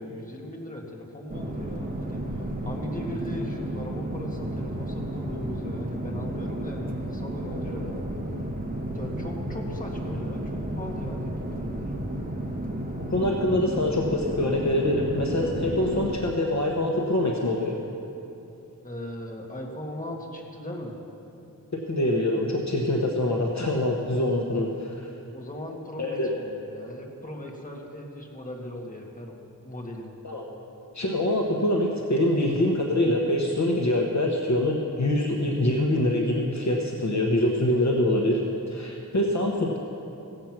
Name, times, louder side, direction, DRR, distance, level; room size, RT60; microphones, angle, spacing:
voice 1, 0.0-8.2 8.9-12.0 18.8-20.9 25.3-30.1, left 1 dB, 25° left, -1 dB, 1.8 m, -38 dB
sound 1, 1.3-16.2, right 1 dB, 25° right, 1.2 m, -32 dB
voice 2, 13.1-17.8 21.7-25.1 26.0-26.3 30.2-30.5 30.9-38.4 38.7-39.8, left 1 dB, 50° left, 0 dB, 1.1 m, -24 dB
17.0 x 7.8 x 5.9 m, 2.8 s
wide cardioid pair, 75°, 35 cm